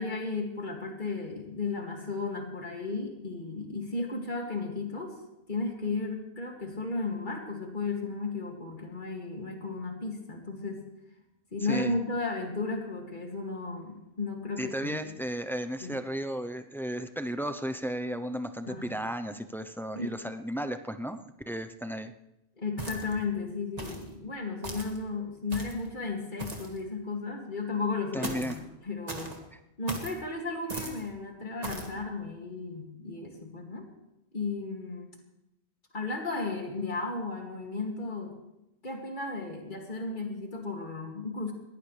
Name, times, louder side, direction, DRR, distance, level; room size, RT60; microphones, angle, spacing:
voice 1, 0.0-5.2 5.5-10.8 11.5-15.2 15.8-16.0 18.7-18.9 19.9-20.2 22.6-29.4 29.8-33.9 34.3-35.1 35.9-38.4 38.8-41.5, left 3 dB, 50° left, 1 dB, 2.7 m, -34 dB
voice 2, 14.6-21.2 21.5-22.1 28.1-28.6, equal, ahead, 9 dB, 0.6 m, -34 dB
sound 1, 22.8-23.3 23.8-24.1 24.6-25.0 25.5-25.9 26.4-26.8 28.2-28.6 29.1-29.4 29.9-30.2 30.7-31.0 31.6-31.9, right 1 dB, 35° right, 2.2 m, -37 dB
21.5 x 17.0 x 3.4 m, 0.90 s
omnidirectional pair, 1.1 m